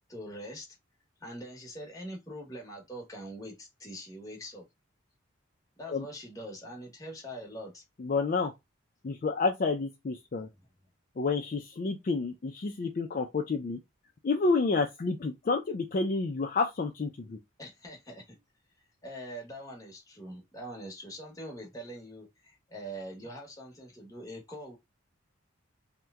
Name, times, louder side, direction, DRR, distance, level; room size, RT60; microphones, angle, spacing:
voice 1, 0.1-0.8 1.2-4.7 5.8-7.8 17.6-18.4 19.0-24.8, equal, 15° left, 0.9 m, -43 dB
voice 2, 8.0-8.5 9.0-10.5 11.2-13.8 14.2-17.4, left 4 dB, 40° left, 0.4 m, -29 dB
2.9 x 2.1 x 3.4 m
head